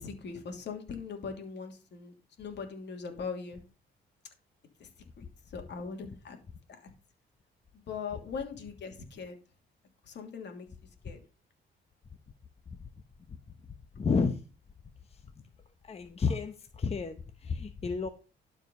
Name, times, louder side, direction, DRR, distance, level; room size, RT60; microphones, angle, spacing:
voice 1, 0.0-3.6 4.8-4.9 5.2-6.4 6.8-6.9 7.9-9.4 10.0-10.7 11.0-11.2, left 5 dB, 60° left, 3 dB, 2.9 m, -40 dB
voice 2, 14.0-14.4 15.1-15.2 15.8-18.1, left 5 dB, 30° left, 7 dB, 0.9 m, -31 dB
11.5 x 4.8 x 5.4 m, 0.34 s
cardioid pair, 90°, 20 cm